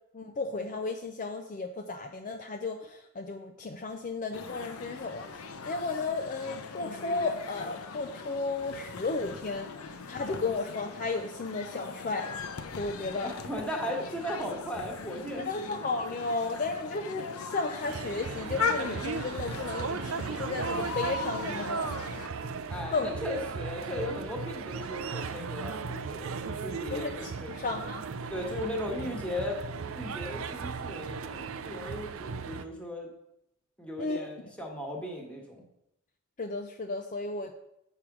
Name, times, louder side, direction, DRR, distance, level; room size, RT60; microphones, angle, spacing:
voice 1, 0.1-12.5 12.8-13.3 15.4-21.9 22.9-23.2 26.9-28.1 34.0-34.3 36.4-37.5, left 3 dB, 35° left, 4 dB, 0.5 m, -34 dB
sound 1, 4.3-22.3, left 5 dB, 80° left, 0.7 m, -39 dB
voice 2, 13.2-15.7 22.7-27.5 28.3-29.6 29.9-33.1 33.8-35.6, left 1 dB, 5° left, 0 dB, 1.4 m, -37 dB
sound 2, 17.9-32.6, right 5 dB, 65° right, 0.5 m, -36 dB
7.4 x 5.0 x 6.0 m, 0.83 s
head